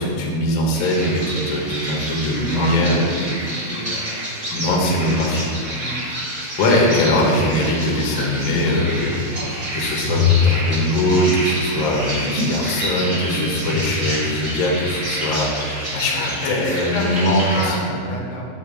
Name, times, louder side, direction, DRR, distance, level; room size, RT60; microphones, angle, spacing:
voice 1, 0.0-3.0 4.5-5.5 6.6-18.0, left 1 dB, 60° left, -3 dB, 1.2 m, -21 dB
sound 1, 0.7-17.6, right 1 dB, 40° right, 0.6 m, -29 dB
voice 2, 2.2-3.4 3.7-4.2 4.6-5.1 5.7-6.0 13.2-13.7 15.9-18.4, left 1 dB, 80° left, -1 dB, 2.4 m, -29 dB
sound 2, 8.6-9.6 10.0-13.1 13.5-14.0 14.3-14.4, left 6 dB, 80° right, 2.8 m, -23 dB
8.3 x 3.0 x 6.3 m, 2.4 s
omnidirectional pair, 3.7 m